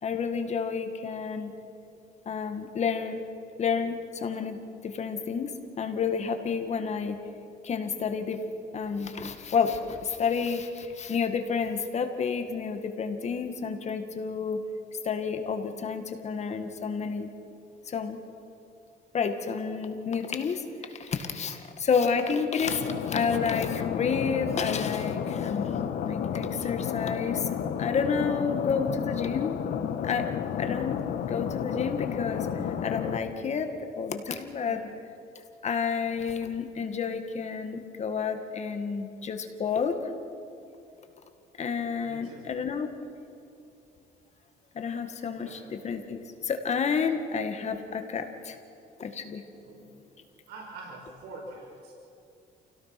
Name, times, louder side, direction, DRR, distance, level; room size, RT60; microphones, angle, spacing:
voice 1, 0.0-1.5 2.3-3.2 3.6-7.2 7.6-8.4 8.7-14.6 15.0-17.3 17.9-18.2 19.1-25.7 26.0-29.6 30.0-30.3 30.6-31.0 31.3-33.7 34.0-34.8 35.6-40.1 41.6-42.9 44.7-48.6 49.0-49.4, left 6 dB, 40° left, 7 dB, 2.0 m, -30 dB
sound 1, 22.7-33.2, left 8 dB, 65° left, 1.4 m, -31 dB
voice 2, 42.0-42.5 45.3-45.7 49.7-50.0 50.5-51.9, right 2 dB, 85° right, -2 dB, 5.6 m, -45 dB
28.5 x 17.5 x 6.1 m, 2.7 s
cardioid pair, 110°, 17 cm